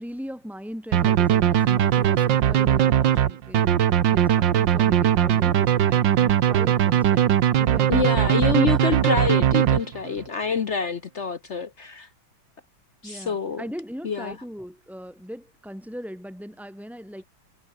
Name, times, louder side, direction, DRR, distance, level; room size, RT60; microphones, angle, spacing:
voice 1, 0.0-3.7 4.1-8.5 13.0-17.2, equal, ahead, 7.0 m, -39 dB
sound 1, 0.9-10.2, right 10 dB, 65° right, 1.7 m, -20 dB
voice 2, 7.9-12.1 13.0-13.6 14.0-14.3, left 6 dB, 50° left, 0.9 m, -26 dB
omnidirectional pair, 2.2 m